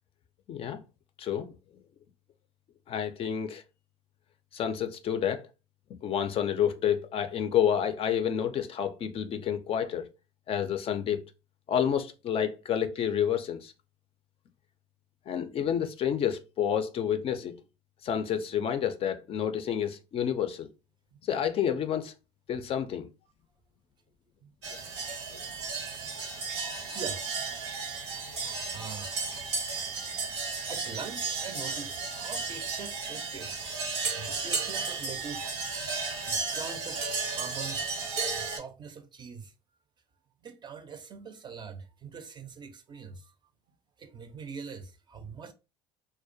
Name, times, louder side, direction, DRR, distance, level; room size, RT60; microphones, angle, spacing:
voice 1, 0.5-0.8 1.2-1.5 2.9-3.6 4.5-5.4 6.0-10.1 10.5-11.2 11.7-13.7 15.3-17.6 18.0-20.7 21.2-22.1 22.5-23.1, left 9 dB, 45° left, 0.4 m, -29 dB
sound 1, 24.6-38.6, right 4 dB, 90° right, 0.7 m, -34 dB
voice 2, 28.4-29.1 30.7-33.7 34.1-35.9 36.3-37.0 37.3-37.9 38.4-39.5 40.4-43.3 44.0-45.5, right 5 dB, 30° right, 0.4 m, -43 dB
2.3 x 2.1 x 2.5 m
hypercardioid pair, 75°, 14 cm